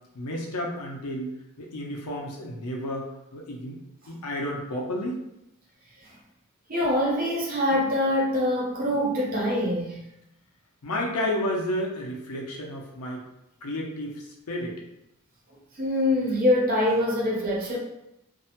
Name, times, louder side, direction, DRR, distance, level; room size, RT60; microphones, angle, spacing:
voice 1, 0.1-3.8 4.1-5.2 10.8-13.3 13.6-14.8, left 1 dB, 85° left, -1 dB, 0.6 m, -31 dB
voice 2, 6.7-10.0 15.8-17.8, left 1 dB, 40° right, -3 dB, 0.6 m, -24 dB
2.6 x 2.1 x 2.8 m, 0.85 s
head